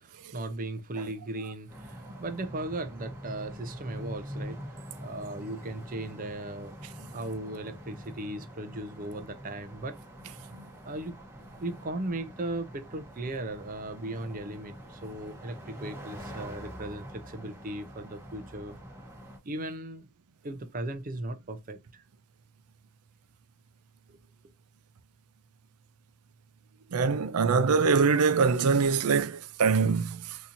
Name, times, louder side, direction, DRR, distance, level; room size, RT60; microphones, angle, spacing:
voice 1, 0.0-6.8 7.1-10.0 10.8-11.2 11.6-18.8 19.4-20.1 20.4-22.0 24.1-24.2, right 2 dB, 40° right, 0.5 m, -37 dB
sound 1, 1.7-19.4, equal, 10° right, 1.0 m, -44 dB
voice 2, 26.9-30.4, right 5 dB, 85° right, 0.5 m, -24 dB
4.2 x 2.8 x 2.5 m
head